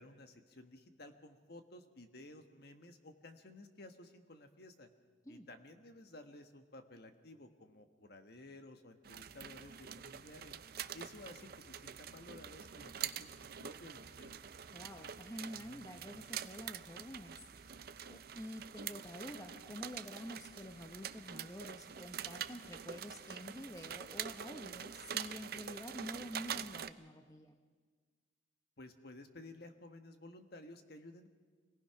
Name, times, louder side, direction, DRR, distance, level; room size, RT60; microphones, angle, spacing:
voice 1, 0.0-4.9 5.3-10.6 10.9-13.3 13.6-14.3 28.8-31.3, left 2 dB, 55° left, 7 dB, 1.4 m, -54 dB
sound 1, 9.0-26.9, right 8 dB, 50° right, 0.6 m, -46 dB
voice 2, 14.7-17.8 18.1-27.6, left 1 dB, 15° left, 5 dB, 0.8 m, -48 dB
24.5 x 18.5 x 5.8 m, 1.5 s
head